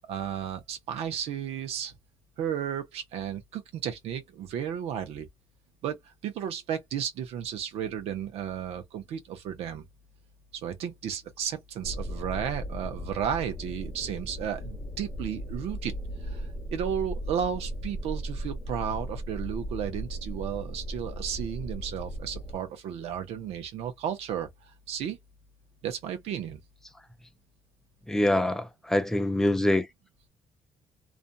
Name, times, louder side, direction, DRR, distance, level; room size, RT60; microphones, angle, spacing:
voice 1, 0.1-1.9 2.4-5.3 5.8-9.8 10.6-15.9 16.2-24.5 24.9-25.2 25.8-26.6, right 9 dB, 80° right, 0.7 m, -33 dB
sound 1, 11.8-22.6, equal, 25° left, 0.9 m, -37 dB
voice 2, 28.1-29.9, left 1 dB, 5° left, 0.4 m, -25 dB
2.5 x 2.2 x 2.6 m
cardioid pair, 155°, 10 cm